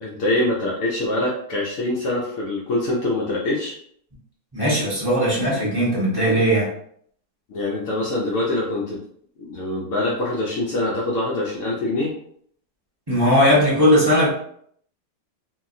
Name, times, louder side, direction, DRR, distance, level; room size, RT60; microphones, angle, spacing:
voice 1, 0.0-3.7 7.5-9.0 9.4-12.1, left 1 dB, 65° left, -5 dB, 0.7 m, -24 dB
voice 2, 4.5-6.7 13.1-14.3, equal, 20° right, -8 dB, 0.6 m, -18 dB
2.9 x 2.7 x 2.5 m, 0.65 s
omnidirectional pair, 1.9 m